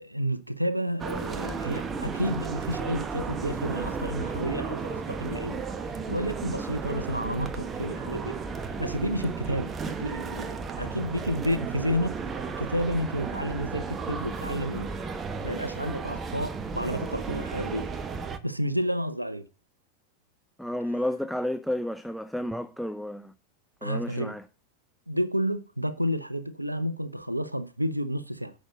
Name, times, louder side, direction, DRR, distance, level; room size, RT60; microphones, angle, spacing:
voice 1, 0.0-5.6 6.1-8.4 8.8-12.2 12.4-14.9 15.4-17.9 18.4-19.5 23.8-24.3 25.1-28.5, equal, 85° right, 0.7 m, -30 dB
sound 1, 1.0-18.4, right 5 dB, 20° right, 1.1 m, -34 dB
voice 2, 20.6-23.3 23.8-24.4, left 1 dB, ahead, 0.5 m, -31 dB
9.0 x 6.4 x 6.2 m
figure-of-eight pair, 90°, 0 cm